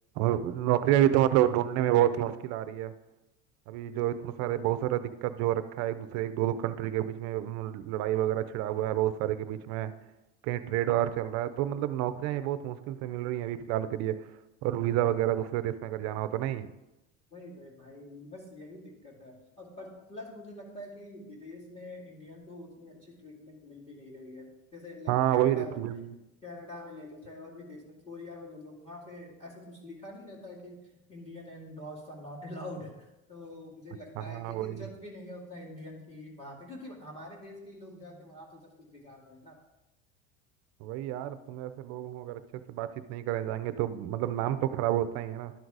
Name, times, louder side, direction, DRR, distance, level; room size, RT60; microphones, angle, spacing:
voice 1, 0.2-2.9 3.7-9.9 10.4-14.1 14.6-16.7 25.1-26.2 34.2-34.8 40.8-42.4 42.7-45.5, right 12 dB, 45° right, 12 dB, 0.6 m, -29 dB
voice 2, 17.3-25.8 26.4-39.6, left 1 dB, 15° left, -3 dB, 2.2 m, -45 dB
12.0 x 4.0 x 4.7 m, 0.98 s
supercardioid pair, 140°, 36 cm